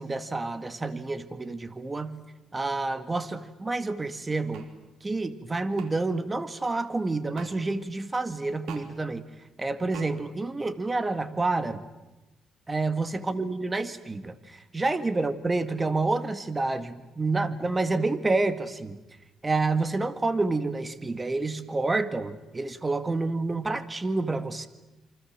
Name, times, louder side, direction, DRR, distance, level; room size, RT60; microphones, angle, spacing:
voice 1, 0.0-2.2 2.5-4.7 5.0-9.2 9.6-11.8 12.7-19.0 19.4-24.7, right 3 dB, 20° right, 12 dB, 2.0 m, -28 dB
sound 1, 4.5-4.7 5.8-5.9 7.4-7.5 8.7-8.9 9.9-10.1, right 8 dB, 85° right, 3.1 m, -41 dB
28.0 x 24.5 x 7.6 m, 1.0 s
cardioid pair, 90°, 0 cm